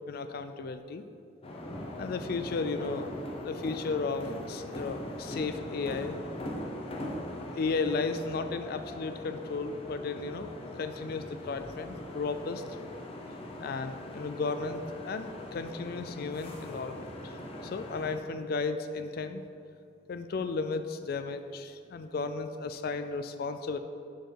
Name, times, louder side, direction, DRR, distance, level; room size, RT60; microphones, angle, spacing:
voice 1, 0.1-1.0 2.0-3.1 3.4-6.2 7.6-10.5 10.8-12.6 13.6-17.3 17.6-19.4 20.1-23.8, left 4 dB, 50° left, 9 dB, 0.4 m, -34 dB
sound 1, 1.4-18.2, left 1 dB, 30° left, 0.7 m, -41 dB
9.2 x 4.5 x 4.6 m, 2.5 s
head